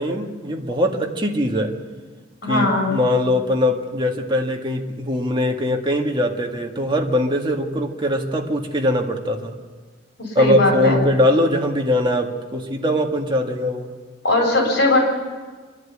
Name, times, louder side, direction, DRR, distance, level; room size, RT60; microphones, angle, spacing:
voice 1, 0.0-1.7 2.5-9.5 10.4-13.9, left 1 dB, 25° right, 1 dB, 1.9 m, -21 dB
voice 2, 2.4-2.9 10.2-11.0 14.2-15.0, left 2 dB, 60° left, -1 dB, 7.5 m, -19 dB
26.5 x 11.0 x 9.0 m, 1.4 s
head